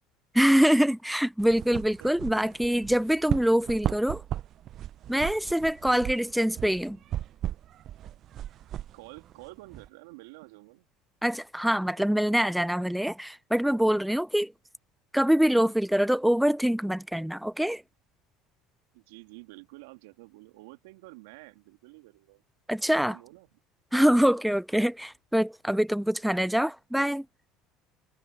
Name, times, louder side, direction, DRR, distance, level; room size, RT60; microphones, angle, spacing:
voice 1, 0.3-4.2 5.1-7.0 11.2-14.5 15.1-17.8 22.7-23.2 23.9-27.3, equal, ahead, 0.5 m, -24 dB
sound 1, 1.4-9.9, right 12 dB, 50° right, 0.6 m, -36 dB
voice 2, 2.0-2.6 2.9-3.0 8.8-10.9 18.9-22.4 22.8-23.5, right 23 dB, 75° right, 2.6 m, -49 dB
hypercardioid pair, 75°, 0 cm